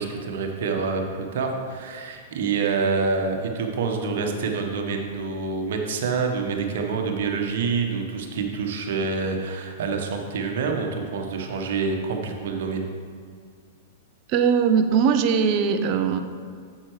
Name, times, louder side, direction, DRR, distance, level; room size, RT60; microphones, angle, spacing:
voice 1, 0.0-12.9, right 4 dB, 65° right, 3 dB, 1.2 m, -27 dB
voice 2, 14.3-16.2, right 6 dB, 45° right, 7 dB, 0.6 m, -20 dB
9.9 x 7.4 x 3.2 m, 2.1 s
hypercardioid pair, 105°, 0 cm